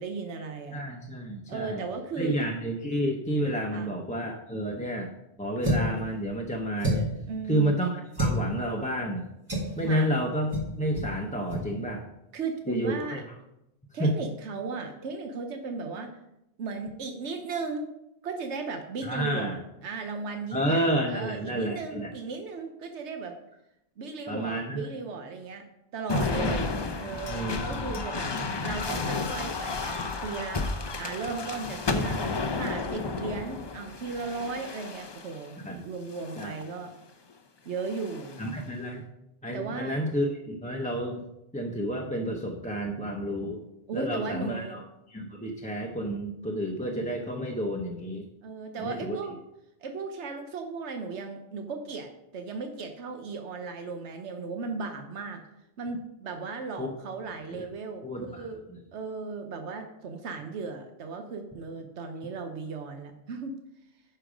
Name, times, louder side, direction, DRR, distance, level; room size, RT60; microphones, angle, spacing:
voice 1, 0.0-0.8 1.5-2.4 3.7-3.9 7.3-7.7 9.8-10.1 12.3-13.2 13.9-16.1 16.6-17.9 18.2-23.3 24.0-25.6 25.9-26.7 27.0-28.3 28.6-30.6 30.9-36.9 37.6-38.4 39.5-40.0 43.9-44.8 48.4-49.4 49.8-55.4 55.8-58.6 58.9-63.5, right 4 dB, 90° right, 5 dB, 1.2 m, -36 dB
voice 2, 0.7-1.8 2.2-5.1 5.4-7.1 7.5-9.3 9.8-12.0 12.7-13.2 14.0-14.1 19.0-19.6 20.5-22.1 24.3-24.8 26.4-26.6 27.3-28.1 35.6-35.8 36.4-36.5 38.4-39.0 39.4-41.2 41.5-43.6 43.9-44.8 45.1-48.3 48.8-49.2 56.8-56.9 57.5-57.7 58.0-58.5, right 1 dB, 10° left, 0 dB, 0.7 m, -30 dB
sound 1, 5.6-6.0 6.8-7.2 8.1-8.4 9.5-9.8 10.5-10.7 11.0-11.1 11.5-11.7, right 1 dB, 25° right, 1.8 m, -27 dB
sound 2, 26.1-35.5 36.2-36.7 37.8-38.5, left 3 dB, 35° left, 0.4 m, -32 dB
9.8 x 5.6 x 5.1 m, 0.85 s
omnidirectional pair, 1.1 m